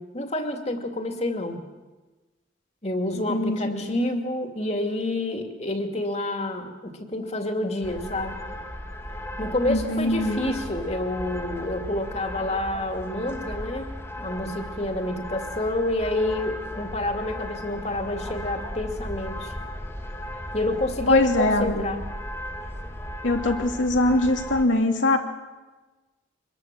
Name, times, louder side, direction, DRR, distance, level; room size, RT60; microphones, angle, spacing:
voice 1, 0.0-1.6 2.8-8.4 9.4-13.9 14.2-19.5 20.5-22.0, left 1 dB, 35° left, 5 dB, 2.5 m, -28 dB
voice 2, 3.3-3.8 9.7-10.4 21.1-21.9 23.2-25.2, left 2 dB, 90° left, 2 dB, 3.0 m, -22 dB
sound 1, 7.8-24.7, equal, 15° left, 2.2 m, -36 dB
25.0 x 21.0 x 7.7 m, 1.2 s
head